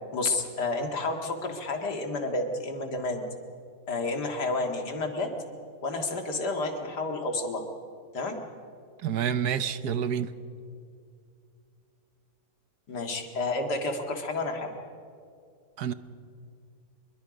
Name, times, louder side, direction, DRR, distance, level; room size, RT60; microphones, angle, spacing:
voice 1, 0.1-3.2 3.9-5.3 5.8-7.7 8.1-8.4 12.9-14.7, left 2 dB, 90° left, 4 dB, 2.6 m, -30 dB
voice 2, 9.0-10.3 15.8-15.9, right 8 dB, 75° right, 12 dB, 1.4 m, -28 dB
27.0 x 22.0 x 5.2 m, 2.3 s
omnidirectional pair, 1.7 m